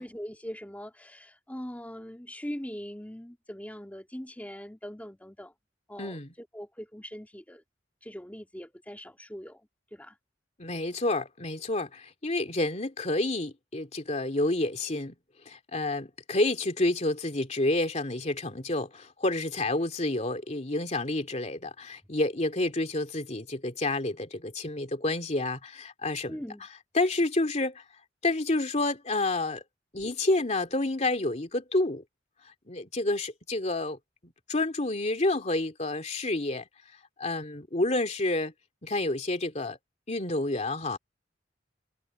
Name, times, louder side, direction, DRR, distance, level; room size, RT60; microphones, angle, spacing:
voice 1, 0.0-5.5 5.9-7.6 8.0-10.2 26.3-26.7, equal, 10° left, 2.4 m, -41 dB
voice 2, 6.0-6.3 10.6-15.1 15.5-26.4 26.9-27.8 28.2-29.6 29.9-32.0 32.7-34.0 34.2-36.6 37.2-38.5 38.8-39.8 40.1-41.0, left 2 dB, 40° left, 2.7 m, -29 dB
head